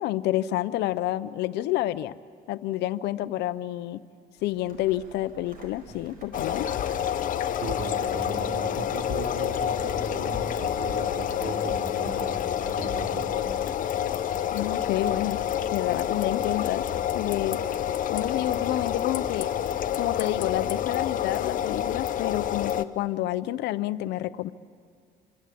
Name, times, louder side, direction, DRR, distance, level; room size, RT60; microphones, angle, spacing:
voice 1, 0.0-2.2 2.5-4.0 4.4-6.7 14.5-15.4 15.7-16.9 17.1-17.6 18.1-19.5 19.9-24.5, left 14 dB, 80° left, 13 dB, 0.7 m, -29 dB
sound 1, 4.4-11.8, right 4 dB, 60° right, 5.0 m, -53 dB
sound 2, 6.3-22.8, left 9 dB, 50° left, 0.9 m, -28 dB
voice 2, 7.6-13.4, right 4 dB, 80° right, 2 dB, 3.4 m, -37 dB
26.0 x 25.5 x 8.6 m, 2.2 s
cardioid pair, 110°, 17 cm